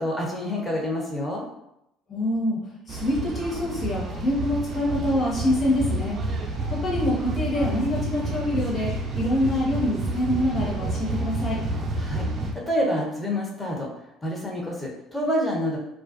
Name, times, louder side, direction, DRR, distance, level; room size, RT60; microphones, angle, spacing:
voice 1, 0.0-1.4 12.0-12.3 12.5-13.9 14.2-15.8, equal, 15° left, -2 dB, 0.8 m, -27 dB
voice 2, 2.1-2.6 2.9-6.2 6.7-11.6, left 1 dB, 35° left, -5 dB, 1.1 m, -25 dB
sound 1, 2.9-12.5, right 2 dB, 45° right, 0.4 m, -29 dB
2.4 x 2.2 x 2.4 m, 0.81 s
hypercardioid pair, 65°, 0 cm